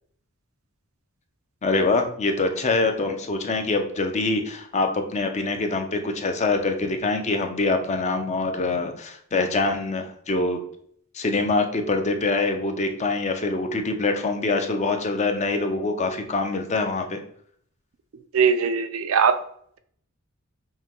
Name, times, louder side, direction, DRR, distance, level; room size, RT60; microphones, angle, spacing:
voice 1, 1.6-10.6 11.1-17.2, left 3 dB, 35° left, 5 dB, 0.5 m, -24 dB
voice 2, 18.3-19.4, right 6 dB, 70° right, 10 dB, 0.4 m, -20 dB
5.5 x 2.2 x 3.0 m, 0.64 s
head